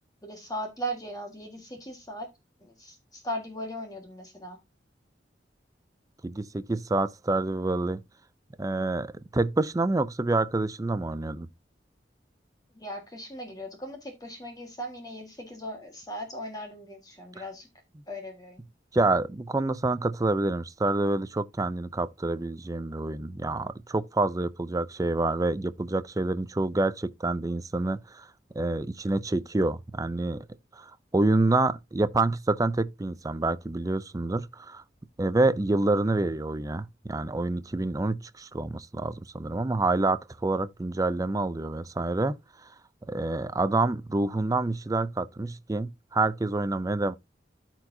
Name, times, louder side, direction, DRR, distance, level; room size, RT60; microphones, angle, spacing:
voice 1, 0.2-2.3 2.6-4.6 12.7-17.7 18.1-18.6, equal, 20° left, 1.6 m, -38 dB
voice 2, 6.2-8.0 8.6-11.5 17.4-17.5 18.9-28.3 28.5-30.5 30.7-34.8 35.2-42.4 42.6-42.7 43.1-47.1, right 2 dB, 20° right, 0.4 m, -27 dB
13.5 x 4.6 x 2.7 m
head